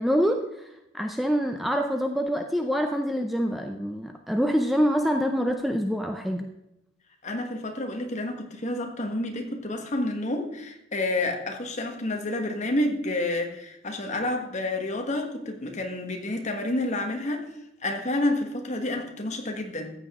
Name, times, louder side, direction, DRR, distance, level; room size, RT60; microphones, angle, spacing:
voice 1, 0.0-6.5, equal, ahead, 0.5 m, -26 dB
voice 2, 7.2-17.5 17.8-19.9, left 1 dB, 35° left, 1.5 m, -29 dB
14.5 x 8.0 x 3.7 m
head